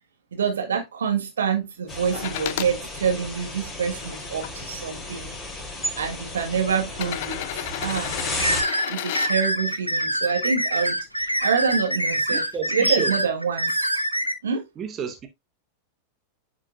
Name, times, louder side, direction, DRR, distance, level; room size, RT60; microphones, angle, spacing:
voice 1, 0.3-5.4 6.0-7.4 7.8-8.2 8.9-12.4 12.7-13.8 14.4-14.6, right 6 dB, 65° right, 1.6 m, -26 dB
sound 1, 1.9-8.6, left 1 dB, 10° left, 3.3 m, -34 dB
sound 2, 2.1-2.7 3.5-4.5 5.5-5.6 6.9-9.3 11.2-11.3, left 13 dB, 50° left, 0.6 m, -32 dB
sound 3, 8.4-14.3, right 1 dB, 90° right, 0.9 m, -25 dB
voice 2, 12.3-13.1 14.8-15.3, right 7 dB, 25° right, 1.1 m, -31 dB
9.7 x 5.0 x 2.5 m
figure-of-eight pair, 90°, 0 cm